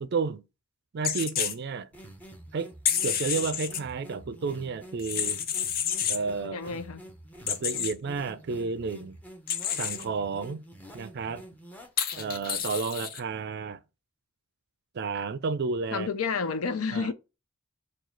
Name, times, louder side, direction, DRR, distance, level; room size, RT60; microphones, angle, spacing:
voice 1, 0.0-0.5 0.9-1.9 2.5-2.7 3.0-5.4 6.1-6.6 7.5-9.2 9.7-10.6 10.9-11.5 12.2-13.8 14.9-16.1 16.9-17.1, right 4 dB, 50° right, 0.4 m, -31 dB
sound 1, 1.0-1.5 2.8-3.8 5.0-6.2 7.5-7.9 9.5-10.0 12.0-13.2, left 9 dB, 45° left, 0.5 m, -29 dB
sound 2, 1.9-12.6, right 1 dB, 10° left, 0.7 m, -48 dB
voice 2, 6.4-7.0 15.9-17.1, left 5 dB, 90° left, 0.6 m, -30 dB
4.7 x 2.3 x 4.3 m
head